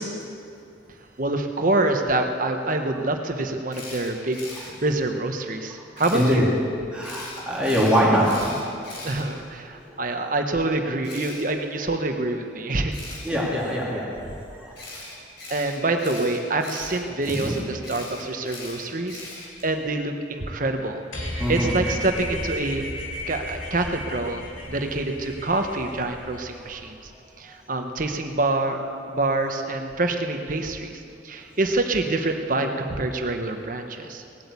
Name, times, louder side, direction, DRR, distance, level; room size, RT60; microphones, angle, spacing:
voice 1, 1.2-6.5 9.0-12.9 15.5-19.2 19.6-22.9 23.3-27.0 27.4-34.2, right 2 dB, 45° right, 5 dB, 1.1 m, -26 dB
Camera, 3.7-4.7 6.0-6.3 7.0-9.8 11.0-11.4 12.9-13.3 14.7-19.7, left 2 dB, 60° left, 4.2 m, -40 dB
voice 2, 6.1-6.5 6.9-8.5 13.2-14.0 14.5-14.7 17.4-17.5 21.4-21.7, equal, 5° right, -6 dB, 3.0 m, -22 dB
sound 1, 21.1-26.7, left 1 dB, 85° left, 3.1 m, -34 dB
19.0 x 8.6 x 8.4 m, 2.5 s
head